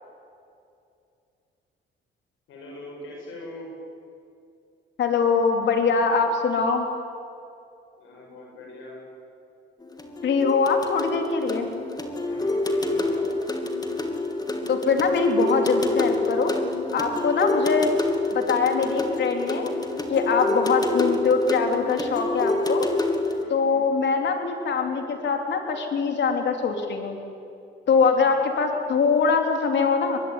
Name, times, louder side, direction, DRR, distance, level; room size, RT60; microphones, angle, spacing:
voice 1, 2.5-3.7 8.0-9.0 12.2-13.3 23.3-23.9 28.1-28.3, left 1 dB, 85° left, -1 dB, 7.3 m, -41 dB
voice 2, 5.0-6.9 10.2-11.7 14.7-16.6 16.9-17.9 18.3-19.8 20.1-22.9 23.5-27.2 27.9-30.2, left 5 dB, 65° left, 4 dB, 3.8 m, -23 dB
sound 1, 9.8-23.4, left 2 dB, 20° left, 2.9 m, -27 dB
22.5 x 22.5 x 9.8 m, 2.6 s
cardioid pair, 90°, 20 cm